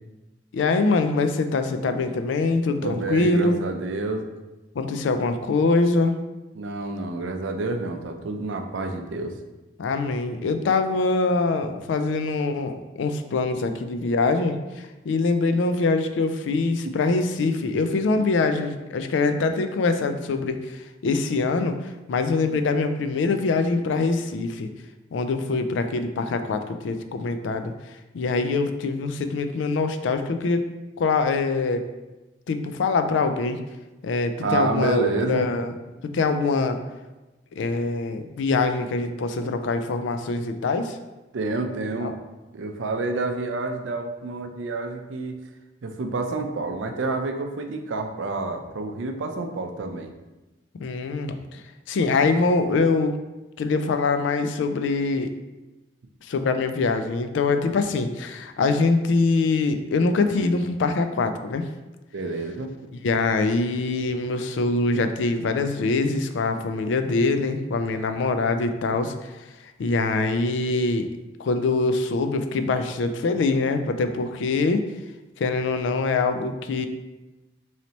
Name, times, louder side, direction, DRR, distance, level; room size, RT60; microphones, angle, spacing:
voice 1, 0.5-3.6 4.8-6.1 9.8-21.8 22.1-24.7 25.1-27.7 28.1-30.6 31.0-31.8 32.5-33.6 34.0-35.7 36.1-36.8 37.6-41.0 42.0-42.1 50.8-51.6 51.9-53.1 53.6-55.3 56.2-61.6 63.0-69.3 69.8-71.1 71.4-74.8 75.4-76.9, left 3 dB, 75° left, 8 dB, 0.3 m, -24 dB
voice 2, 2.8-4.3 6.6-9.4 16.8-16.9 17.7-17.8 34.4-35.5 41.3-42.1 42.5-45.4 45.8-50.1 62.1-62.7, right 3 dB, 85° right, 5 dB, 0.5 m, -28 dB
3.2 x 2.9 x 4.0 m, 1.1 s
head